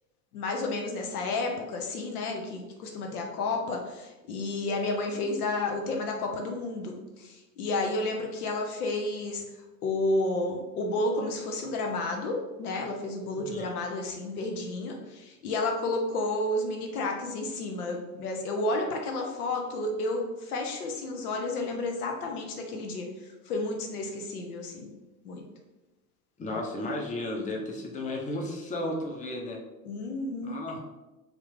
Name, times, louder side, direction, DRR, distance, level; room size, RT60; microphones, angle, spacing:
voice 1, 0.3-9.4 9.8-23.1 23.5-24.9 25.2-25.4 29.8-30.6, left 2 dB, 80° left, 2 dB, 0.7 m, -31 dB
voice 2, 13.3-13.7 26.4-29.6 30.4-30.8, left 1 dB, 15° left, 0 dB, 0.7 m, -34 dB
3.0 x 2.5 x 3.3 m, 1.1 s
hypercardioid pair, 75°, 44 cm